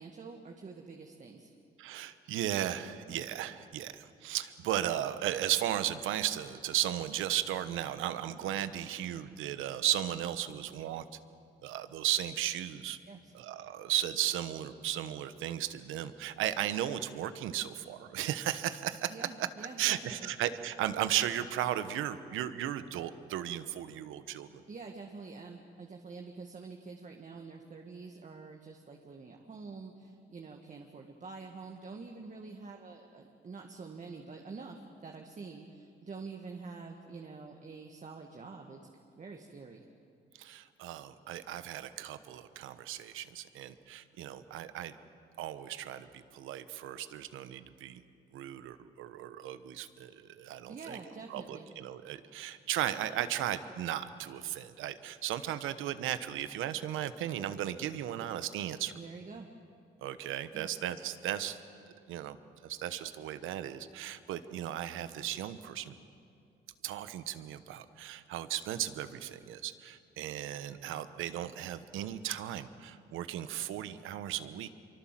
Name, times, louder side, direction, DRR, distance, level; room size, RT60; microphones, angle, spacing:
voice 1, 0.0-1.5 13.1-13.3 19.1-20.3 24.7-38.8 39.2-39.9 50.7-51.7 58.9-59.5 60.5-60.7, right 4 dB, 40° right, 2 dB, 1.9 m, -46 dB
voice 2, 1.8-11.0 11.6-13.0 13.3-19.1 19.8-24.6 40.4-45.0 45.4-48.0 48.3-51.0 51.3-58.9 60.0-61.6 62.1-62.4 62.6-66.0 66.8-74.7, right 12 dB, 90° right, 12 dB, 1.2 m, -35 dB
25.5 x 24.0 x 7.6 m, 2.5 s
cardioid pair, 90°, 20 cm